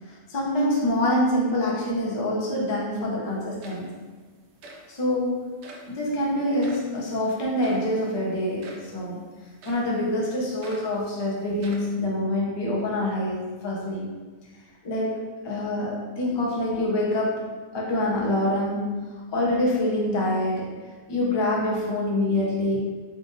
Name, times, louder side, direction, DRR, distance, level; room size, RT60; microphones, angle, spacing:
voice 1, 0.3-3.9 4.9-5.4 5.9-9.2 9.6-14.0 14.8-17.5 17.7-19.0 19.3-20.7 21.1-22.8, left 1 dB, 30° left, -4 dB, 0.5 m, -25 dB
sound 1, 3.3-3.4 3.6-4.1 4.6-4.9 5.6-5.9 6.6-6.9 7.6-7.9 8.6-8.9 9.6-9.9 10.6-11.0 11.6-12.0, right 2 dB, 65° right, 0.7 m, -44 dB
4.1 x 2.5 x 3.8 m, 1.4 s
omnidirectional pair, 1.5 m